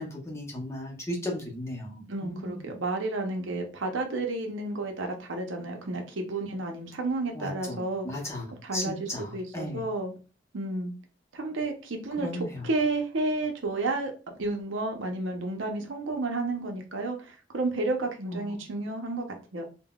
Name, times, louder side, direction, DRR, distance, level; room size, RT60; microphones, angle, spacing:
voice 1, 0.0-2.8 7.3-9.8 12.2-12.7 18.3-18.7, left 1 dB, 15° left, -1 dB, 0.6 m, -36 dB
voice 2, 2.1-8.1 8.6-10.1 10.5-10.9 11.3-12.3 12.6-14.1 14.4-19.2 19.5-19.7, right 2 dB, 80° right, 4 dB, 0.6 m, -31 dB
3.7 x 2.1 x 2.3 m, 0.33 s
head